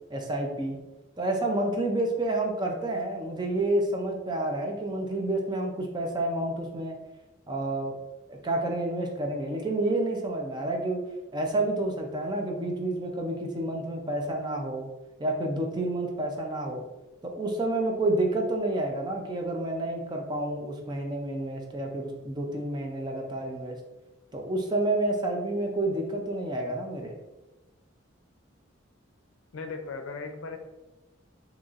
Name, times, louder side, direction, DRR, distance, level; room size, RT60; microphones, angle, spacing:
voice 1, 0.1-0.8 1.2-6.9 7.5-8.0 8.3-11.0 11.3-14.9 15.2-16.8 17.2-23.8 24.3-27.1, right 2 dB, 20° right, 1 dB, 0.4 m, -29 dB
voice 2, 29.5-30.6, left 4 dB, 80° left, 6 dB, 0.5 m, -37 dB
4.0 x 2.9 x 2.4 m, 1.0 s
head